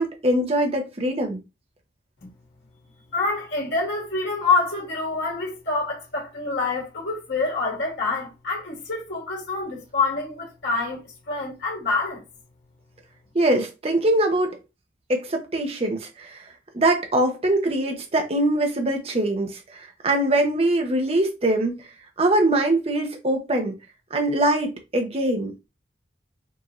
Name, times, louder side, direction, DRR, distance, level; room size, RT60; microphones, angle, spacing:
voice 1, 0.0-1.4 13.3-14.6 15.1-23.8 24.1-25.5, right 1 dB, 35° right, 0.7 m, -23 dB
voice 2, 3.1-12.2, left 3 dB, 85° left, 1.5 m, -26 dB
4.6 x 2.7 x 3.0 m
head